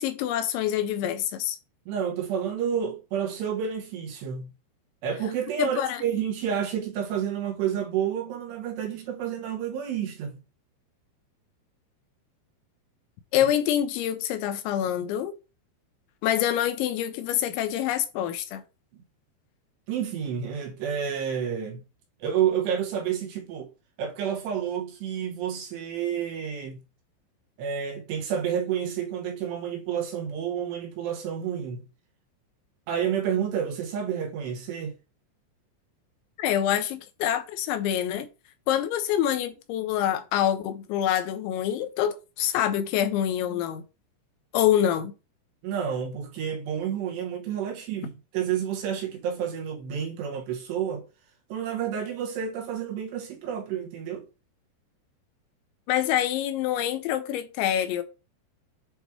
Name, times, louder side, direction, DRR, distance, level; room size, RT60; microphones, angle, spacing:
voice 1, 0.0-1.6 5.6-6.0 13.3-15.3 16.2-18.6 36.4-38.3 38.7-43.8 44.5-45.1 55.9-58.0, left 11 dB, 80° left, 2.9 m, -26 dB
voice 2, 1.9-4.5 5.0-10.4 18.9-19.0 19.9-21.8 22.2-23.7 24.0-26.8 27.6-31.9 32.9-34.9 45.6-51.1 51.5-54.2, right 8 dB, 75° right, 2.7 m, -30 dB
8.1 x 3.0 x 4.6 m
omnidirectional pair, 5.4 m